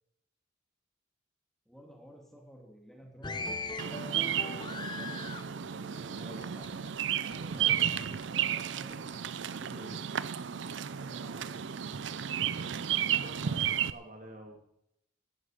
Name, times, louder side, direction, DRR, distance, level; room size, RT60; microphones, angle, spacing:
voice 1, 1.7-5.3 5.8-9.0 9.5-10.0 10.9-11.8, equal, ahead, 0 dB, 2.8 m, -53 dB
sound 1, 3.2-6.9 7.3-8.3 8.9-9.2, left 3 dB, 25° left, 0.8 m, -41 dB
Bird vocalization bird call bird song, 3.8-13.9, right 9 dB, 70° right, 0.5 m, -33 dB
voice 2, 6.2-6.5 7.6-8.1 9.7-10.0 12.6-14.6, right 1 dB, 45° right, 2 dB, 2.3 m, -49 dB
15.5 x 14.0 x 5.1 m, 0.80 s
head